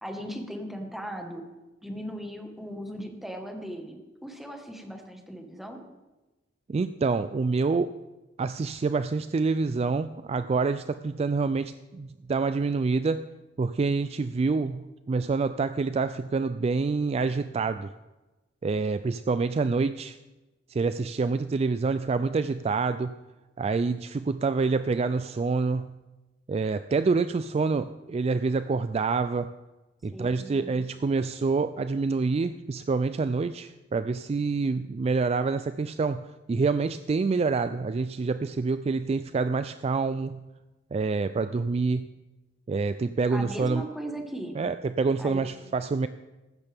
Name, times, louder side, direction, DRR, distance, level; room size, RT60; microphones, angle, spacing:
voice 1, 0.0-1.5 1.8-5.8 30.1-30.8 43.3-44.6 45.2-45.4, equal, ahead, 3 dB, 1.5 m, -38 dB
voice 2, 6.7-7.9 8.4-13.3 13.6-17.9 18.6-20.2 20.7-23.2 23.6-25.9 26.5-29.5 30.0-40.5 40.9-42.1 42.7-43.8 44.6-46.1, right 4 dB, 35° right, 12 dB, 0.3 m, -27 dB
15.5 x 12.5 x 3.5 m, 1.1 s
head